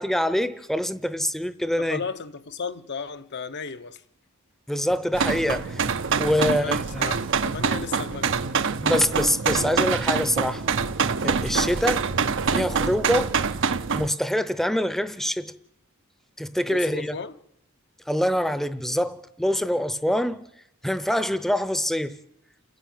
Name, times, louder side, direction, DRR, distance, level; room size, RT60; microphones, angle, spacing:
voice 1, 0.0-2.0 4.7-5.9 6.1-7.1 8.8-10.6 11.2-12.1 12.5-13.4 13.9-15.5 16.4-17.2 18.1-20.5 20.8-22.2, equal, ahead, 0.8 m, -25 dB
voice 2, 1.8-4.0 6.4-8.4 16.6-17.4, left 5 dB, 50° left, 0.9 m, -35 dB
sound 1, 5.1-14.1, right 5 dB, 60° right, 0.8 m, -25 dB
29.0 x 10.5 x 9.1 m
head